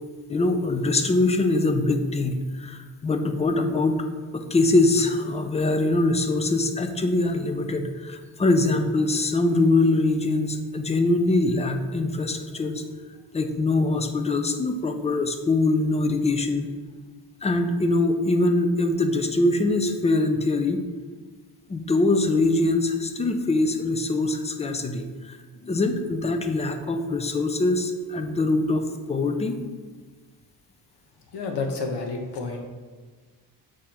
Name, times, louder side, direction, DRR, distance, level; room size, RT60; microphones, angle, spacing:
voice 1, 0.3-4.0 4.3-12.8 13.3-16.7 17.4-20.8 21.7-25.4 25.6-29.6, left 2 dB, 15° left, 7 dB, 0.3 m, -23 dB
voice 2, 31.3-32.6, left 3 dB, 80° left, 3 dB, 1.1 m, -29 dB
7.2 x 4.8 x 2.9 m, 1.4 s
wide cardioid pair, 145°, 41 cm